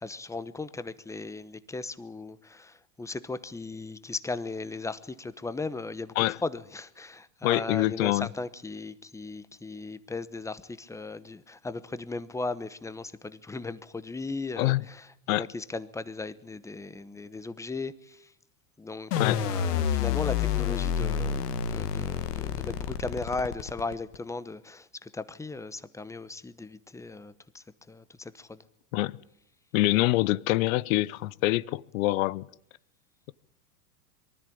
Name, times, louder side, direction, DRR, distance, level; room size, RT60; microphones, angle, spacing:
voice 1, 0.0-18.3 18.8-28.6, left 3 dB, 5° left, 0.9 m, -37 dB
voice 2, 7.4-8.3 14.6-14.8 15.3-15.5 19.1-19.5 28.9-29.2 29.7-32.5, left 18 dB, 60° left, 0.8 m, -25 dB
sound 1, 19.1-24.2, left 8 dB, 75° left, 1.8 m, -29 dB
23.0 x 13.5 x 8.6 m
hypercardioid pair, 110°, 47 cm